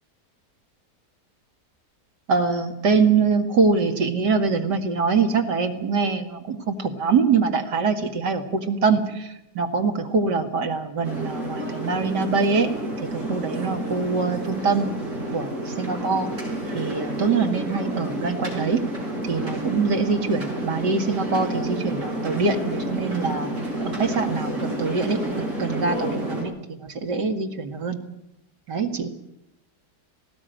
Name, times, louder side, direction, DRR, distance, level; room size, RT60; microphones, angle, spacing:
voice 1, 2.3-12.7 13.1-14.9 15.3-16.3 16.7-18.8 19.3-23.5 23.8-28.0 28.7-29.1, right 4 dB, 85° right, 4 dB, 2.6 m, -24 dB
sound 1, 11.0-26.4, right 1 dB, 45° right, 6.6 m, -30 dB
19.0 x 17.5 x 9.2 m, 0.82 s
omnidirectional pair, 1.8 m